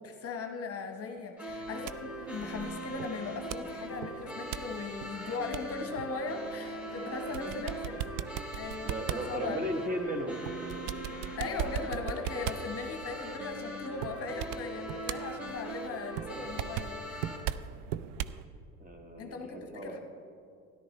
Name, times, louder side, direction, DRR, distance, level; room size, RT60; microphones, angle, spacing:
voice 1, 0.0-8.0 8.6-9.6 11.4-17.3 19.2-20.0, left 4 dB, 35° left, 5 dB, 1.0 m, -39 dB
sound 1, 1.4-17.4, equal, 5° right, 1.8 m, -41 dB
sound 2, 1.5-18.4, right 11 dB, 55° right, 0.5 m, -40 dB
voice 2, 7.0-7.5 8.9-10.4 18.8-20.0, right 1 dB, 20° right, 4 dB, 1.3 m, -36 dB
13.0 x 11.5 x 3.2 m, 2.4 s
hypercardioid pair, 75°, 39 cm